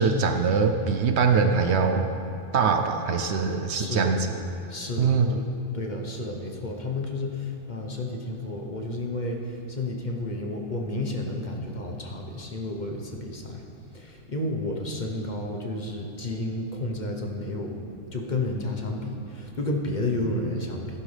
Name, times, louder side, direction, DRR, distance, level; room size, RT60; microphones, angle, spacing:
voice 1, 0.0-2.1 2.5-4.4 5.0-5.4, right 5 dB, 65° right, 6 dB, 0.9 m, -23 dB
voice 2, 3.7-4.1 4.7-5.4 5.7-13.6 13.9-21.0, left 2 dB, 40° left, 1 dB, 1.1 m, -31 dB
15.0 x 11.0 x 3.4 m, 2.7 s
omnidirectional pair, 1.3 m